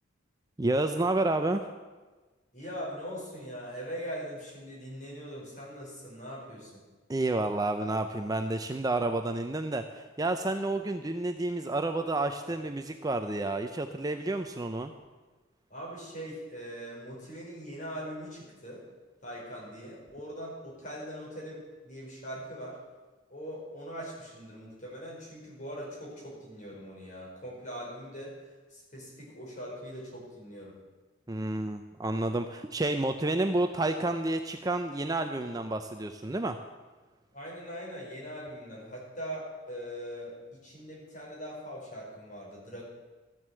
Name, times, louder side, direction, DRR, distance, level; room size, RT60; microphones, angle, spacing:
voice 1, 0.6-1.7 7.1-14.9 31.3-36.6, right 2 dB, 20° right, 7 dB, 0.5 m, -30 dB
voice 2, 2.5-6.8 15.7-18.8 19.2-22.8 23.3-30.8 37.3-42.8, equal, 40° left, -4 dB, 5.0 m, -41 dB
13.5 x 7.9 x 7.5 m, 1.3 s
head